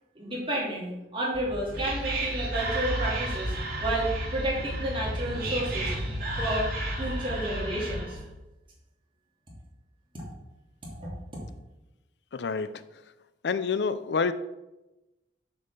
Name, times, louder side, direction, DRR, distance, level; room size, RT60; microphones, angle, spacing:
voice 1, 0.1-3.6 3.8-5.9 6.4-6.7 7.0-8.2 11.0-11.1, right 1 dB, 30° right, -4 dB, 2.9 m, -31 dB
Whispering, 1.3-8.3, right 1 dB, 55° right, 3.0 m, -32 dB
voice 2, 12.3-12.7 13.4-14.3, left 5 dB, 70° left, 13 dB, 0.5 m, -27 dB
6.8 x 5.5 x 6.8 m, 0.99 s
head